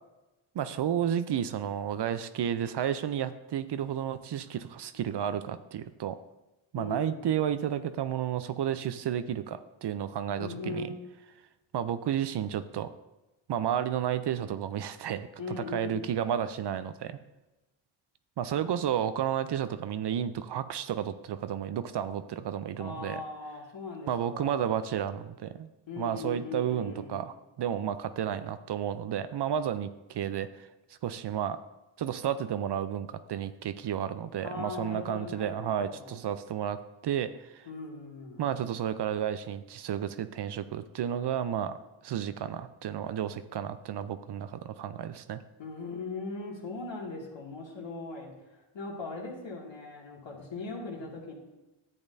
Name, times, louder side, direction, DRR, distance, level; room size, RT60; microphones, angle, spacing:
voice 1, 0.5-6.2 6.7-10.9 11.7-12.9 13.5-17.2 18.4-23.2 24.1-25.7 26.0-30.7 31.0-31.6 32.0-37.7 38.4-41.8 42.0-45.4, right 9 dB, 55° right, 12 dB, 0.6 m, -32 dB
voice 2, 6.7-7.4 10.4-10.9 15.4-16.1 18.5-18.6 22.8-24.7 25.9-27.2 34.4-36.2 37.7-38.6 45.6-51.3, left 3 dB, 65° left, -2 dB, 2.3 m, -39 dB
10.5 x 7.9 x 2.7 m, 1.0 s
supercardioid pair, 50°, 49 cm